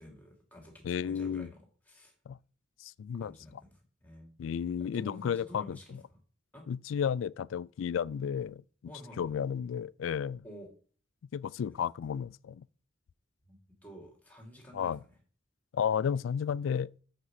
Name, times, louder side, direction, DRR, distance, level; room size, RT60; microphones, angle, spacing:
voice 1, 0.0-2.1 3.2-3.7 4.0-4.3 4.8-6.2 6.5-6.6 8.9-9.3 10.4-10.7 11.7-11.8 13.4-14.9, equal, 10° left, 2.7 m, -50 dB
voice 2, 0.8-1.5 2.3-2.4 2.8-3.3 4.4-6.0 6.7-8.6 9.2-10.4 11.3-12.7 14.7-15.0 15.7-16.9, left 7 dB, 85° left, 0.3 m, -32 dB
6.8 x 6.2 x 7.3 m
head